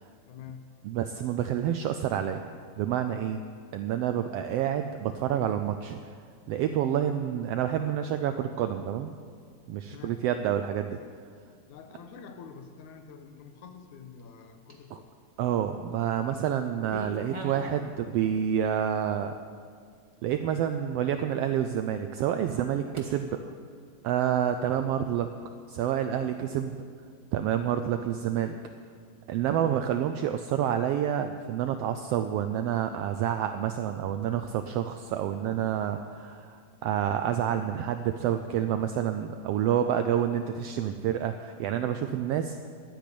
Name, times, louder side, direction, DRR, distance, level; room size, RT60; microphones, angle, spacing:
voice 1, 0.3-0.7 9.9-10.2 11.7-15.1 29.5-29.8, left 6 dB, 85° left, 7 dB, 2.5 m, -47 dB
voice 2, 0.8-2.4 2.8-3.4 3.7-6.0 6.5-9.1 9.7-11.0 14.9-15.0 15.4-19.3 20.2-23.5 24.0-25.3 25.7-26.8 27.3-28.6 29.3-42.6, right 9 dB, 90° right, 8 dB, 1.3 m, -28 dB
sound 1, 14.7-15.1 15.7-16.3 16.5-17.8 18.2-18.7 19.3-19.4 20.0-20.1 20.7-20.8 22.9-23.1, right 1 dB, 15° right, 1.0 m, -42 dB
12.0 x 9.3 x 8.4 m, 2.1 s
omnidirectional pair, 3.4 m